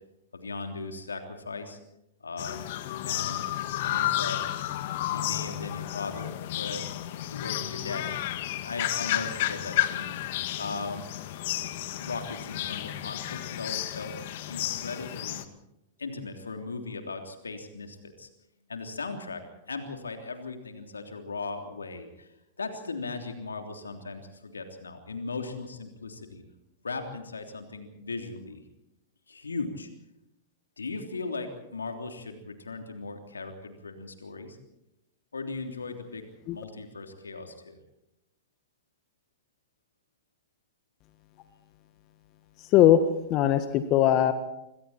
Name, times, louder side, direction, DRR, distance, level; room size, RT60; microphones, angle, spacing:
voice 1, 0.3-1.8 2.2-2.7 3.0-3.5 3.8-4.4 5.0-7.0 7.3-8.2 8.6-10.1 10.6-11.1 12.0-14.1 14.5-15.4 16.0-18.3 18.7-19.4 19.7-22.3 22.6-26.4 26.8-28.6 29.3-29.9 30.8-34.6 35.3-37.8, left 3 dB, 85° left, 5 dB, 3.3 m, -38 dB
sound 1, 2.4-15.5, left 14 dB, 60° left, 1.8 m, -32 dB
voice 2, 43.3-44.3, left 12 dB, 40° left, 9 dB, 1.6 m, -20 dB
27.5 x 23.5 x 4.4 m, 0.87 s
figure-of-eight pair, 100°, 0 cm